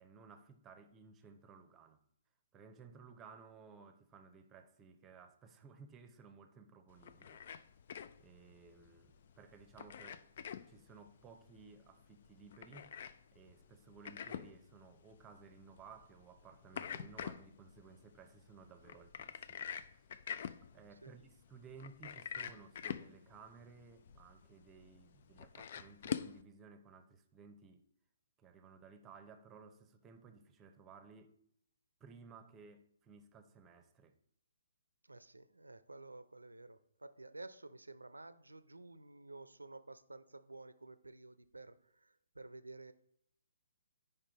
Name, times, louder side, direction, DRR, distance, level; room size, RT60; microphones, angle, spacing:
voice 1, 0.0-2.0 2.5-7.4 8.2-10.2 10.7-13.0 13.3-20.2 20.6-27.9 28.4-31.3 32.0-34.2, right 5 dB, 20° right, 0.8 m, -58 dB
sound 1, 6.9-26.4, left 8 dB, 50° left, 0.4 m, -47 dB
voice 2, 35.0-42.9, right 2 dB, 90° right, 0.5 m, -52 dB
8.7 x 5.4 x 4.0 m
figure-of-eight pair, 135°, 0 cm